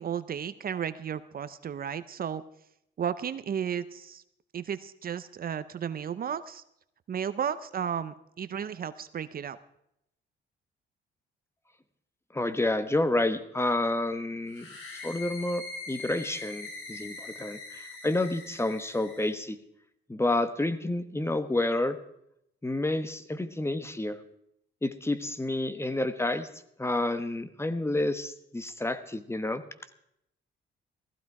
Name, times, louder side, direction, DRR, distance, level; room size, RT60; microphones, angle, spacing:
voice 1, 0.0-2.4 3.0-4.2 4.5-6.6 7.1-9.6, right 8 dB, 50° right, 13 dB, 0.7 m, -33 dB
voice 2, 12.3-14.7 15.0-19.6 20.1-22.0 22.6-24.2 24.8-26.5 26.8-29.6, left 2 dB, 15° left, 11 dB, 1.2 m, -29 dB
sound 1, 14.5-19.3, left 3 dB, 90° left, 4.6 m, -43 dB
15.5 x 15.0 x 4.8 m, 0.76 s
cardioid pair, 90°, 20 cm